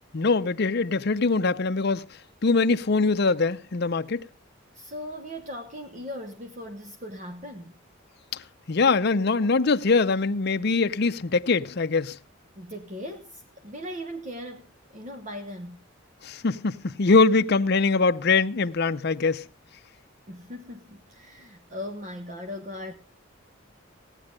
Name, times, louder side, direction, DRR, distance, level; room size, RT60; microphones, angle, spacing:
voice 1, 0.1-2.1 2.4-4.2 8.7-12.2 16.2-19.5, left 4 dB, 50° left, 0.6 m, -23 dB
voice 2, 4.7-7.8 12.6-15.8 20.3-22.9, equal, 35° right, 1.0 m, -38 dB
17.0 x 9.8 x 5.1 m
head